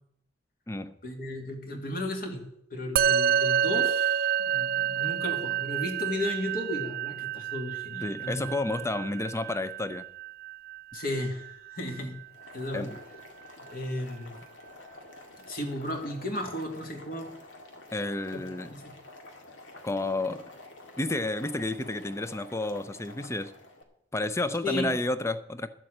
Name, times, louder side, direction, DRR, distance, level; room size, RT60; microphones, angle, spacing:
voice 1, 1.0-2.4 2.7-8.5 10.9-12.2 12.5-12.9 13.7-14.3 15.5-17.3 18.7-18.9 24.6-24.9, left 1 dB, 50° left, 2.3 m, -34 dB
Musical instrument, 3.0-12.5, right 9 dB, 55° right, 0.4 m, -29 dB
voice 2, 8.0-10.1 12.7-13.0 17.9-18.7 19.8-20.5 21.0-23.5 24.1-25.7, left 2 dB, 15° left, 0.6 m, -31 dB
Boiling, 12.3-23.8, left 2 dB, 85° left, 2.1 m, -49 dB
11.5 x 7.5 x 7.8 m
head